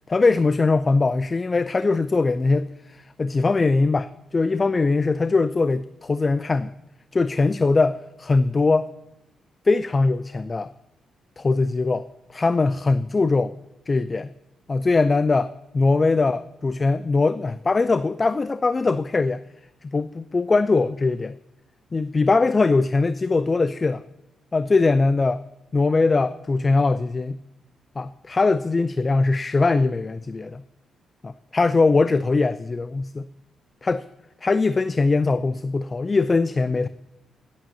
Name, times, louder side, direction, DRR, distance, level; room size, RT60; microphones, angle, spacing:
voice 1, 0.1-6.7 7.1-8.9 9.6-10.7 11.4-13.5 13.9-14.3 14.7-19.4 19.8-21.4 21.9-24.0 24.5-25.4 25.7-27.4 28.0-30.6 31.2-33.3 33.8-34.0 34.4-36.9, left 3 dB, 35° left, 14 dB, 0.5 m, -21 dB
21.0 x 8.6 x 2.8 m, 0.92 s
hypercardioid pair, 45°, 0 cm